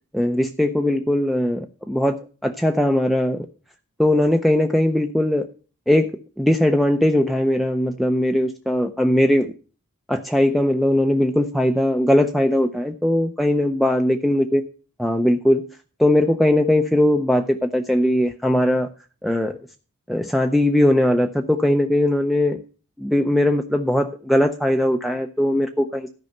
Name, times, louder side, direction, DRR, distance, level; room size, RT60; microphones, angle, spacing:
voice 1, 0.1-2.2 2.4-3.5 4.0-5.5 5.9-9.5 10.1-14.6 15.0-15.6 16.0-18.9 19.2-19.6 20.1-22.6 23.0-26.1, left 1 dB, ahead, 5 dB, 0.5 m, -19 dB
13.0 x 5.4 x 6.5 m, 0.36 s
head